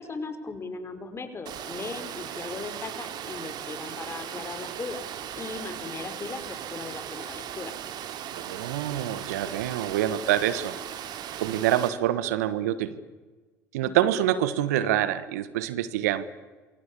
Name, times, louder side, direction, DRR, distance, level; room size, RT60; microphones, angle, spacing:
voice 1, 0.0-5.0 5.4-7.8 13.8-14.1, left 4 dB, 30° left, 8 dB, 5.0 m, -38 dB
Water, 1.5-11.9, right 10 dB, 50° right, 2.7 m, -38 dB
voice 2, 8.3-10.8 11.4-13.0 13.7-16.2, right 12 dB, 70° right, 15 dB, 1.3 m, -26 dB
27.5 x 24.0 x 8.4 m, 1.3 s
figure-of-eight pair, 60°, 9 cm